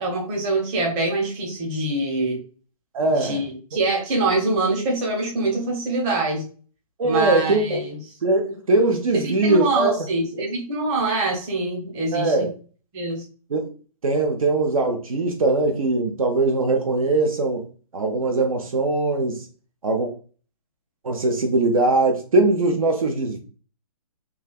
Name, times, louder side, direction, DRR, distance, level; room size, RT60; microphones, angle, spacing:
voice 1, 0.0-2.4 3.1-6.4 7.0-8.0 9.1-12.5 12.9-13.2, right 2 dB, 25° right, -1 dB, 0.8 m, -24 dB
voice 2, 2.9-3.4 7.0-7.9 8.2-9.9 12.1-12.5 13.5-13.7 14.0-17.7 17.9-19.5 19.8-20.1 21.0-23.4, right 2 dB, 65° right, 3 dB, 0.6 m, -21 dB
3.2 x 2.3 x 2.3 m, 0.39 s
figure-of-eight pair, 135°, 19 cm